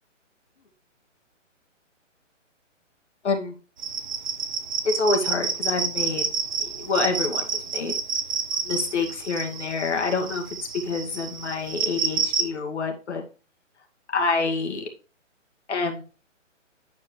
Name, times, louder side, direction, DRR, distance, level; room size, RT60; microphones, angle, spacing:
voice 1, 3.2-3.5 4.8-6.3 6.6-7.9 8.6-10.4 10.7-13.2 14.1-14.9 15.7-16.0, left 4 dB, 60° left, 2 dB, 2.3 m, -27 dB
sound 1, 3.8-12.5, right 5 dB, 40° right, 0.9 m, -29 dB
9.9 x 4.6 x 3.2 m, 0.35 s
hypercardioid pair, 175°, 38 cm